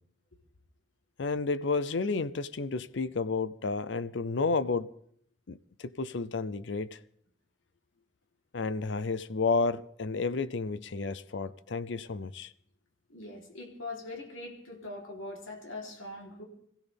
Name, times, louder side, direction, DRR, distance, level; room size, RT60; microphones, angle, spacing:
voice 1, 1.2-4.9 5.5-7.0 8.5-12.5, left 4 dB, 70° left, 0.6 m, -31 dB
voice 2, 13.1-16.4, left 2 dB, 90° left, 3.5 m, -42 dB
25.5 x 16.0 x 3.5 m
head